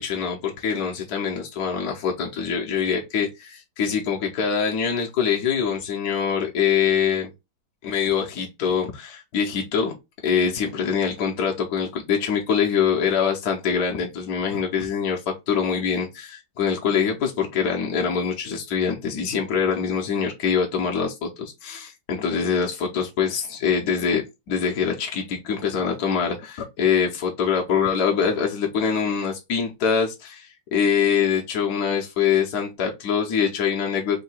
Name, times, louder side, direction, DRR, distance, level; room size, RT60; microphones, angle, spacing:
voice 1, 0.0-7.3 7.8-9.9 10.2-34.2, left 7 dB, 60° left, 1.0 m, -24 dB
3.7 x 2.7 x 4.2 m
omnidirectional pair, 2.3 m